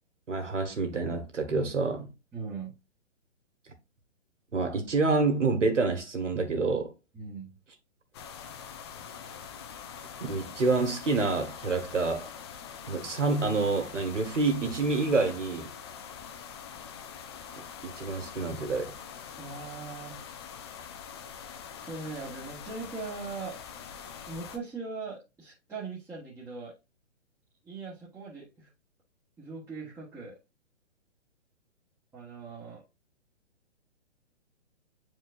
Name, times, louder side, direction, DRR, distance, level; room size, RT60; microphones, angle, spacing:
voice 1, 0.3-2.1 4.5-6.9 10.2-12.3 12.9-15.7 17.6-18.9, right 3 dB, 80° right, 2.0 m, -28 dB
voice 2, 2.3-2.7 7.1-7.6 19.4-20.2 20.8-21.3 21.8-23.6 24.3-26.7 27.6-28.7 29.4-30.4 32.1-32.8, right 4 dB, 10° right, 1.2 m, -40 dB
sound 1, 8.1-24.6, left 7 dB, 20° left, 0.5 m, -44 dB
8.2 x 4.6 x 2.5 m
figure-of-eight pair, 135°, 36 cm